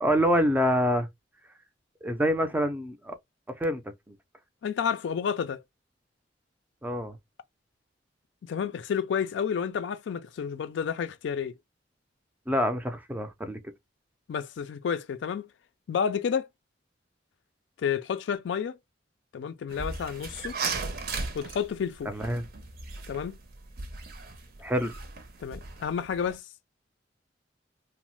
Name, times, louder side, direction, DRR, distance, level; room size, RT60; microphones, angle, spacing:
voice 1, 0.0-1.1 2.0-3.1 3.6-3.8 6.8-7.2 12.5-13.6 22.1-22.4 24.6-24.9, equal, 10° right, 0.4 m, -26 dB
voice 2, 4.6-5.6 8.4-11.5 14.3-15.5 15.9-16.5 17.8-18.8 19.3-20.6 21.3-22.1 23.1-23.4 25.4-26.4, left 7 dB, 70° left, 0.3 m, -30 dB
sound 1, 19.7-26.3, right 4 dB, 55° right, 0.6 m, -37 dB
3.0 x 2.0 x 3.0 m
head